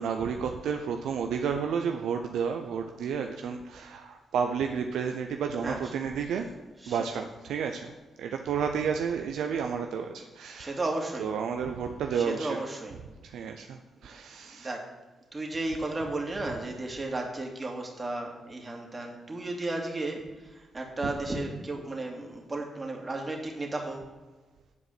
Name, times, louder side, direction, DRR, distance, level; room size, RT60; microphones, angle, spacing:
voice 1, 0.0-6.5 6.9-7.9 8.2-10.8 11.2-12.6 13.2-14.8 21.0-21.1, right 6 dB, 75° right, 4 dB, 0.6 m, -31 dB
voice 2, 10.6-11.3 12.1-13.0 14.6-14.9 15.3-20.2 20.5-24.1, right 2 dB, 35° right, 1 dB, 2.5 m, -34 dB
9.5 x 4.8 x 7.8 m, 1.2 s
hypercardioid pair, 45°, 0 cm